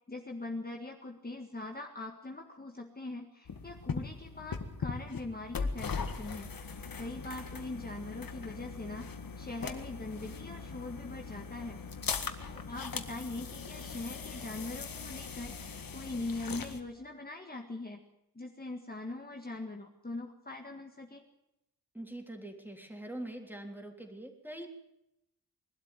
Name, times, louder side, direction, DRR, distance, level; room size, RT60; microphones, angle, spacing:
voice 1, 0.1-9.1 9.4-11.8 12.4-18.0 18.4-21.2, left 2 dB, 25° left, 2 dB, 1.8 m, -42 dB
sound 1, 3.4-16.8, left 5 dB, 70° left, 1.8 m, -40 dB
voice 2, 21.9-24.7, right 1 dB, 5° right, 3 dB, 3.5 m, -43 dB
22.5 x 12.5 x 9.2 m, 0.85 s
wide cardioid pair, 135°, 35 cm